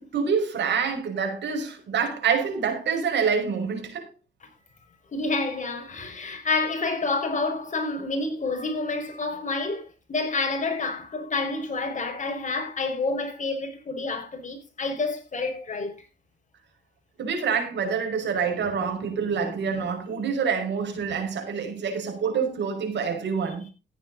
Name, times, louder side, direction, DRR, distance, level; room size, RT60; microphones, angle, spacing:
voice 1, 0.1-4.1 17.2-23.7, right 6 dB, 60° right, 5.4 m, -26 dB
voice 2, 5.1-9.8 10.1-15.9 18.8-19.9 21.0-21.2, left 3 dB, 40° left, 5.1 m, -29 dB
14.5 x 10.5 x 4.0 m
cardioid pair, 90°, 20 cm